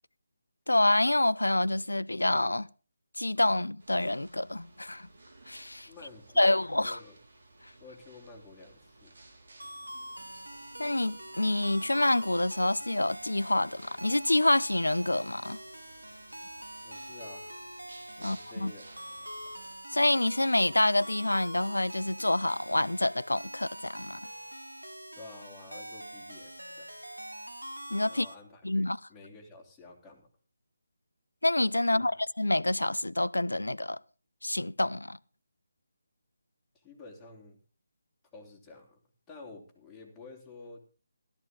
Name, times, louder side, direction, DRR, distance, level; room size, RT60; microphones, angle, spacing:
voice 1, 0.7-2.7 3.2-5.1 5.5-5.9 6.4-7.0 10.8-15.6 18.2-18.7 19.9-24.2 27.9-28.3 28.6-29.0 31.4-34.0 34.4-35.2, left 1 dB, 75° left, 0.6 m, -27 dB
sound 1, 3.8-19.8, right 2 dB, 55° right, 4.5 m, -56 dB
voice 2, 5.9-7.2 7.8-9.1 16.5-17.5 18.2-18.8 25.1-26.9 28.1-30.3 31.8-32.1 36.7-37.6 38.3-39.0 39.3-40.8, left 3 dB, 5° left, 3.7 m, -50 dB
sound 2, 9.6-28.3, right 1 dB, 85° right, 2.6 m, -44 dB
16.5 x 13.5 x 3.8 m
figure-of-eight pair, 150°, 0 cm